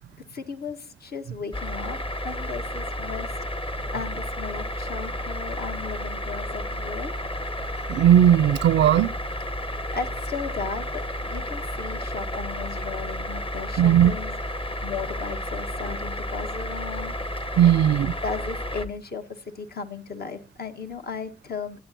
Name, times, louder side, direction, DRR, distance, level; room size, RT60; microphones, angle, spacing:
voice 1, 0.3-3.4 3.9-7.1 9.5-14.4 14.8-17.1 18.2-21.8, left 5 dB, 55° left, 1.6 m, -35 dB
sound 1, 1.5-18.9, left 1 dB, 30° left, 1.2 m, -32 dB
voice 2, 7.9-9.1 13.8-14.1 17.6-18.1, right 10 dB, 70° right, 0.5 m, -17 dB
24.0 x 8.7 x 2.9 m
supercardioid pair, 45°, 19 cm